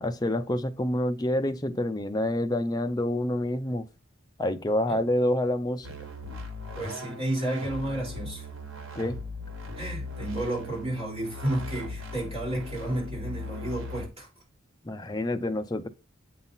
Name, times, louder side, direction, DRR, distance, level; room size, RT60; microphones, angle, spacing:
voice 1, 0.0-3.9 4.4-5.9 9.0-9.2 14.8-15.9, left 1 dB, 20° left, 0.5 m, -27 dB
sound 1, 5.8-14.1, left 2 dB, 80° right, 1.3 m, -38 dB
voice 2, 6.7-8.5 9.8-14.3, right 1 dB, 30° right, 4.2 m, -32 dB
8.0 x 2.8 x 5.6 m
head